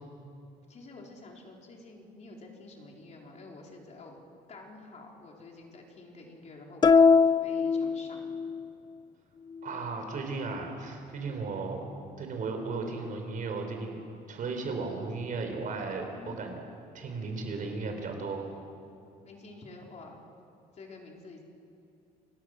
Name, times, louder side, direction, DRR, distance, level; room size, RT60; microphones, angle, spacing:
voice 1, 0.7-4.2 4.5-8.5 16.1-16.4 19.2-20.2 20.7-21.4, left 2 dB, 45° left, 0 dB, 4.1 m, -49 dB
sound 1, 6.8-8.6, left 5 dB, 25° left, 0.4 m, -22 dB
voice 2, 9.6-11.8 12.2-14.0 14.3-16.6 16.9-18.5, right 4 dB, 50° right, 4 dB, 4.2 m, -35 dB
28.0 x 18.0 x 6.4 m, 2.6 s
cardioid pair, 110°, 17 cm